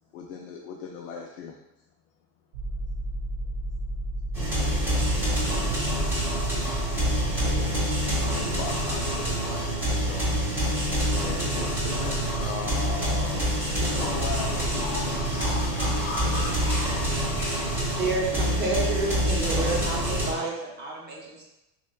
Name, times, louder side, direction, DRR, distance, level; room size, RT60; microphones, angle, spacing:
voice 1, 0.1-1.6 7.4-7.8 8.3-10.3 11.2-15.2 16.0-16.9, left 6 dB, 60° left, 0 dB, 0.5 m, -38 dB
sound 1, 2.5-7.6, right 1 dB, 55° right, 0.9 m, -32 dB
sound 2, 4.3-20.3, right 1 dB, 5° right, 1.0 m, -26 dB
voice 2, 14.8-17.8, left 3 dB, 40° left, -2 dB, 1.0 m, -35 dB
voice 3, 17.9-21.4, right 2 dB, 20° right, -3 dB, 0.7 m, -29 dB
5.8 x 2.3 x 2.2 m, 0.93 s
supercardioid pair, 150°, 48 cm